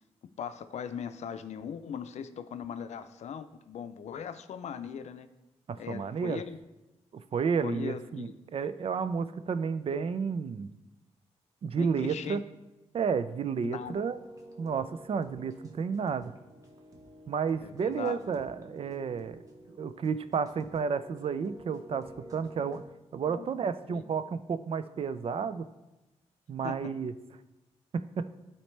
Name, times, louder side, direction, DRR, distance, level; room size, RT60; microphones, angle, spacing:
voice 1, 0.4-5.3 5.8-6.6 7.6-8.3 11.8-12.4 13.6-14.0 17.6-18.2 23.3-23.5 23.9-24.0 26.6-26.8, left 7 dB, 75° left, 10 dB, 0.5 m, -39 dB
voice 2, 5.7-6.4 7.1-10.7 11.6-12.4 12.9-14.2 14.6-16.3 17.3-19.4 19.7-22.8 23.1-25.7 26.5-27.1 27.9-28.3, right 6 dB, 55° right, 13 dB, 0.4 m, -31 dB
sound 1, 13.8-22.9, equal, 30° right, 1.2 m, -51 dB
12.0 x 4.3 x 3.3 m, 1.0 s
cardioid pair, 80°, 12 cm